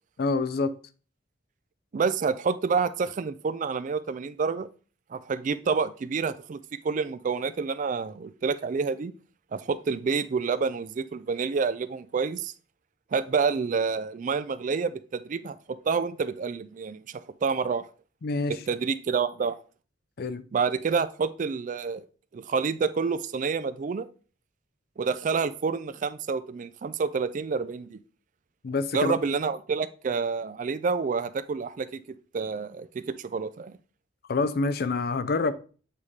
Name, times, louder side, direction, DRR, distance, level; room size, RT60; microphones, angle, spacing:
voice 1, 0.2-0.7 18.2-18.6 20.2-20.4 28.6-29.1 34.3-35.5, left 3 dB, 50° left, 0.4 m, -26 dB
voice 2, 1.9-4.7 5.1-6.6 6.8-9.1 9.5-12.5 13.1-17.8 18.5-19.6 20.5-22.0 22.3-24.1 25.0-28.0 28.9-32.0 32.3-33.7, right 5 dB, 40° right, 0.3 m, -28 dB
8.4 x 3.6 x 3.2 m
head